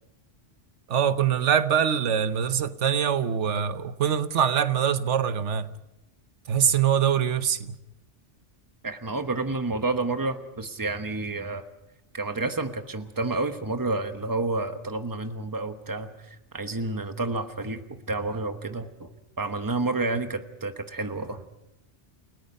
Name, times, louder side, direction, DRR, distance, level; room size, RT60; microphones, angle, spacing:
voice 1, 0.9-5.7 6.5-7.8, right 8 dB, 85° right, 1.2 m, -24 dB
voice 2, 8.8-11.6 12.1-19.1 19.4-21.4, right 3 dB, 20° right, 1.1 m, -30 dB
29.5 x 18.0 x 5.4 m
omnidirectional pair, 1.2 m